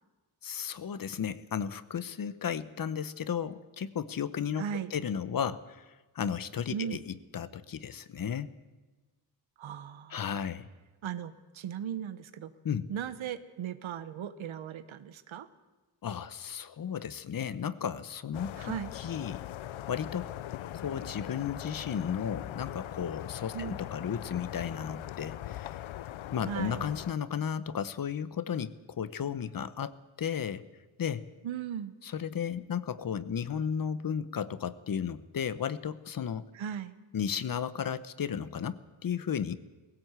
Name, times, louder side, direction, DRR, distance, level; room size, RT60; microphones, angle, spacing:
voice 1, 0.4-4.6 4.9-5.8 6.1-8.5 10.1-10.7 12.6-12.9 16.0-19.5 19.9-20.3 20.7-25.8 26.3-30.6 31.0-31.3 32.0-36.5 37.1-39.6, left 8 dB, 45° left, 14 dB, 0.9 m, -34 dB
voice 2, 4.6-4.9 6.7-7.0 9.6-10.2 11.0-12.5 12.9-15.5 18.6-18.9 23.5-23.8 26.5-26.8 31.4-31.9 36.5-36.9, right 9 dB, 85° right, 13 dB, 1.2 m, -37 dB
sound 1, 18.3-27.1, left 13 dB, 85° left, 0.7 m, -41 dB
19.5 x 17.0 x 8.1 m, 1.2 s
wide cardioid pair, 140°, 46 cm